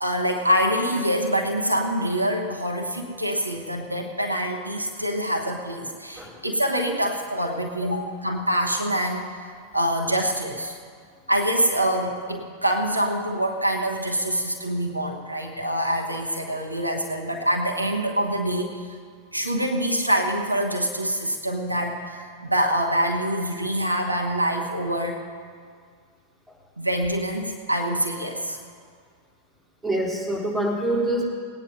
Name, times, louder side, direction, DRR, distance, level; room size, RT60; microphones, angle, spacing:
voice 1, 0.0-9.3 9.7-10.8 11.3-18.9 19.3-25.2 26.8-28.6, equal, 85° right, 2 dB, 1.1 m, -25 dB
voice 2, 29.8-31.3, right 1 dB, 5° right, -5 dB, 3.5 m, -25 dB
19.0 x 9.6 x 5.4 m, 2.1 s
figure-of-eight pair, 90°, 0 cm